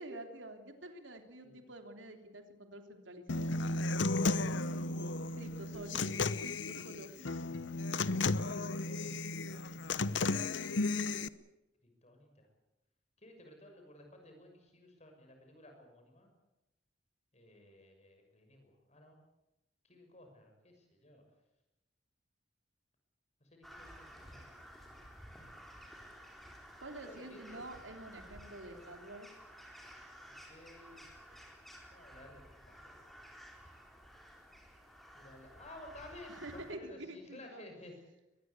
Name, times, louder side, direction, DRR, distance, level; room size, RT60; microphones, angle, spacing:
voice 1, 0.0-3.5 5.4-6.1 6.4-7.4 26.8-29.3 36.3-37.7, right 1 dB, 85° right, 5 dB, 3.3 m, -48 dB
Human voice / Acoustic guitar, 3.3-11.3, left 3 dB, 70° left, 0.8 m, -34 dB
voice 2, 4.4-6.1 8.5-9.7 11.8-12.5 13.2-16.3 17.3-19.2 19.8-21.2 23.4-25.0 26.0-26.2 27.0-27.6 30.3-31.4 31.9-33.1 35.1-37.9, left 1 dB, 35° left, 4 dB, 6.2 m, -56 dB
Crow, 23.6-36.7, equal, ahead, 4.0 m, -54 dB
23.0 x 20.0 x 8.4 m, 0.96 s
head